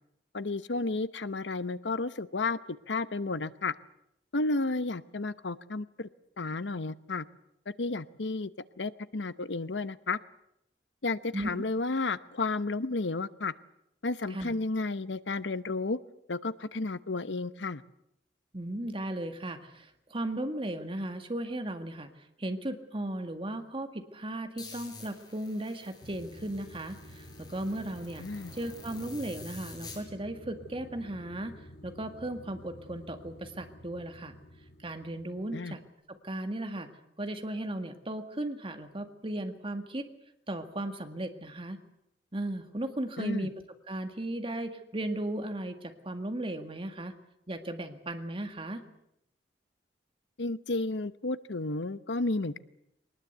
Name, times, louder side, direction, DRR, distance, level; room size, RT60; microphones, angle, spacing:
voice 1, 0.3-2.6 2.9-3.7 4.3-6.1 6.4-7.3 7.8-8.5 8.8-10.2 11.0-13.5 14.0-16.0 16.3-17.8 28.2-28.5 35.5-35.7 43.2-43.5 50.4-52.6, left 3 dB, 85° left, 0.9 m, -32 dB
voice 2, 18.5-22.1 22.4-28.3 28.5-31.5 31.8-34.3 34.8-35.8 36.1-36.9 37.2-40.1 40.5-41.8 42.3-43.5 43.9-47.1 47.5-48.8, right 1 dB, 30° right, 2.0 m, -36 dB
sound 1, 24.6-30.0, left 3 dB, 25° left, 6.4 m, -49 dB
sound 2, 26.0-35.8, equal, 55° left, 6.8 m, -51 dB
22.0 x 19.5 x 8.1 m
head